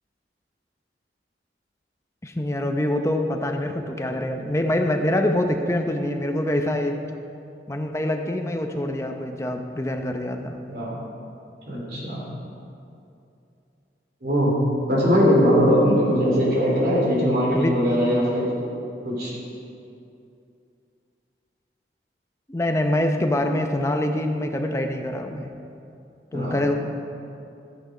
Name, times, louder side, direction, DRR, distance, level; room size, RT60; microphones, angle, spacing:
voice 1, 2.2-7.0 7.7-10.6 17.5-17.9 22.5-25.5 26.3-26.7, left 1 dB, 15° left, 4 dB, 0.8 m, -25 dB
voice 2, 10.7-11.0 11.7-12.2 14.2-14.5 14.9-18.5 19.0-19.3 26.3-26.6, equal, 60° right, -4 dB, 3.3 m, -20 dB
13.0 x 9.7 x 5.0 m, 2.6 s
head